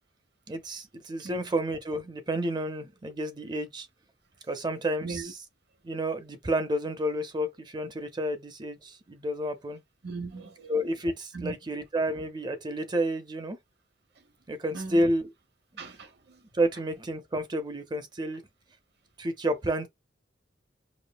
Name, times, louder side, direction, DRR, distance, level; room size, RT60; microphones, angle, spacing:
voice 1, 0.5-3.9 4.5-5.4 5.8-9.8 10.7-13.6 14.5-15.3 15.7-15.8 16.5-18.4 19.2-19.9, right 1 dB, 25° right, 0.5 m, -30 dB
voice 2, 5.0-5.3 10.0-10.7 11.3-11.5 14.7-15.0 15.8-16.4, right 4 dB, 65° right, 0.8 m, -38 dB
5.0 x 2.1 x 2.3 m
head